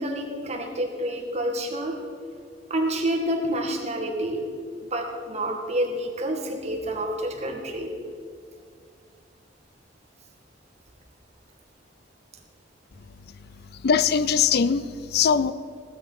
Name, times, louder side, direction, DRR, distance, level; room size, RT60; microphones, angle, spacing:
voice 1, 0.0-2.0 2.7-4.4 4.9-7.9, right 1 dB, 35° right, 2 dB, 2.1 m, -28 dB
voice 2, 13.8-15.5, left 6 dB, 55° left, 15 dB, 0.5 m, -21 dB
16.0 x 12.5 x 5.8 m, 2.2 s
head